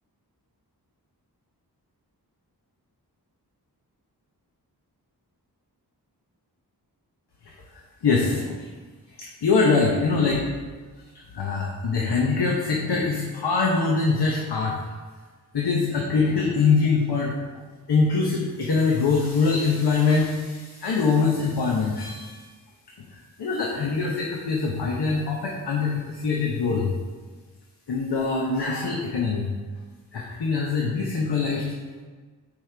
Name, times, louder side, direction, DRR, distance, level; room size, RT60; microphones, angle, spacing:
voice 1, 8.0-8.7 9.2-10.4 11.1-14.7 15.5-17.3 17.9-22.5 23.0-26.9 27.9-29.5 30.1-31.7, left 4 dB, 90° left, -2 dB, 1.0 m, -23 dB
8.7 x 4.9 x 3.4 m, 1.4 s
wide cardioid pair, 70°, 39 cm